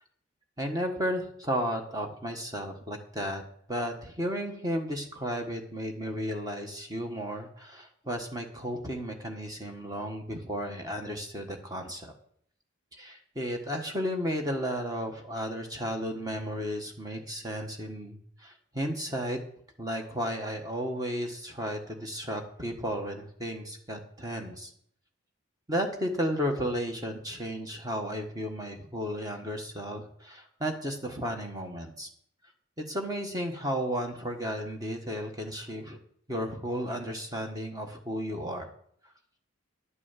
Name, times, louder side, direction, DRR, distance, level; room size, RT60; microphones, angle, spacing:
voice 1, 0.6-3.4 3.7-12.1 12.9-19.4 19.8-24.7 25.7-32.1 32.8-36.0 36.3-38.7, equal, 15° right, 3 dB, 1.3 m, -33 dB
11.0 x 6.1 x 7.4 m, 0.66 s
head